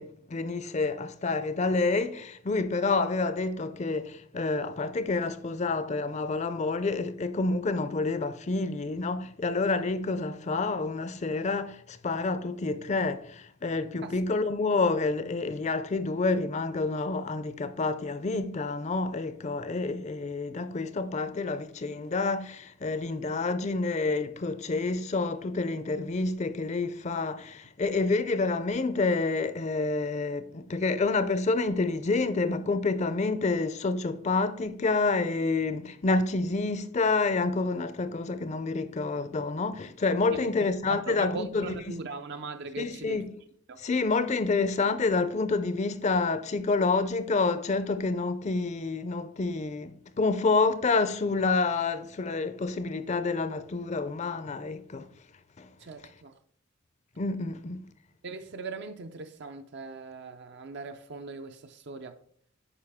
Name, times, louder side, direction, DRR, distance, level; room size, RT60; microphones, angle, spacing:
voice 1, 0.0-41.9 42.8-43.3 43.8-55.1 55.6-55.7 57.2-57.8, left 3 dB, 35° left, 0.5 m, -28 dB
voice 2, 40.9-43.2 43.7-43.8 55.8-56.3 58.2-62.2, right 3 dB, 55° right, 0.5 m, -40 dB
9.9 x 4.8 x 3.5 m
head